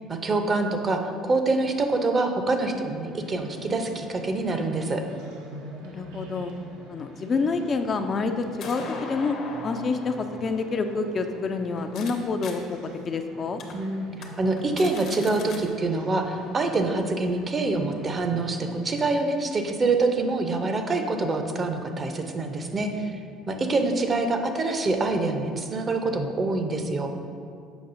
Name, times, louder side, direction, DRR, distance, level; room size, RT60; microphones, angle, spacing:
voice 1, 0.1-5.0 13.7-23.2 23.5-27.1, right 3 dB, 35° right, 5 dB, 0.6 m, -26 dB
sound 1, 3.0-18.7, right 2 dB, 80° right, 0.7 m, -45 dB
voice 2, 5.8-6.5 6.9-12.8 13.0-13.6 23.4-23.8, left 4 dB, 40° left, 6 dB, 0.4 m, -28 dB
sound 2, 7.4-12.1 12.4-12.5 13.1-13.2 13.6-13.7 14.1-14.3 14.6-15.6, left 4 dB, 60° left, 0.8 m, -41 dB
7.0 x 5.3 x 2.6 m, 2.2 s
hypercardioid pair, 65°, 0 cm